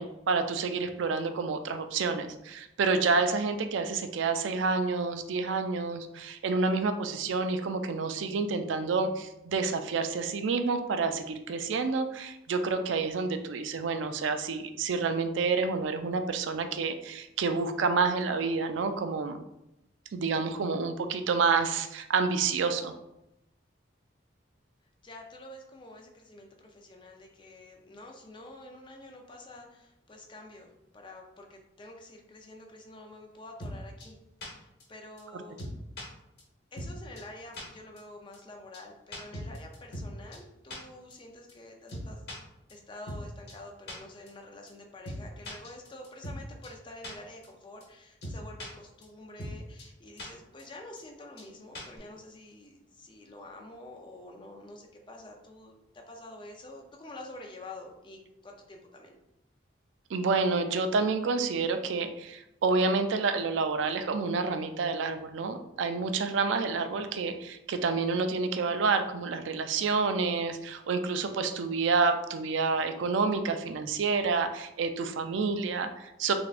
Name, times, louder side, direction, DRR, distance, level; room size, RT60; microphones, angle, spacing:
voice 1, 0.0-19.4 20.1-22.9 35.3-35.4 60.1-76.3, right 4 dB, 75° right, 8 dB, 0.4 m, -29 dB
voice 2, 25.0-34.2 34.5-35.6 36.7-42.2 42.7-59.2, left 1 dB, 25° left, 2 dB, 0.5 m, -48 dB
sound 1, 33.6-33.7 34.0-34.1 34.4-34.5 34.8-34.9 35.2-35.3 35.6-36.0 36.4-36.5 36.8-36.9 37.2-37.3 37.5-37.6 38.0-38.1 38.3-38.4 38.7-38.8 39.1-40.1 40.3-40.4 40.7-40.8 41.1-41.2 41.5-41.6 41.9-42.4 42.7-42.8 43.1-43.2 43.5-43.6 43.9-44.0 44.3-44.4 44.7-44.8 45.0-45.2 45.4-46.4 46.6-46.7 47.0-47.1 47.4-47.5 47.8-47.9 48.2-48.7 49.0-49.1 49.4-49.5 49.8-49.9 50.2-50.3 50.6-50.7 51.0-51.1 51.4-51.5 51.7-52.0, equal, 55° left, 1.0 m, -39 dB
3.5 x 3.4 x 2.4 m, 0.88 s
head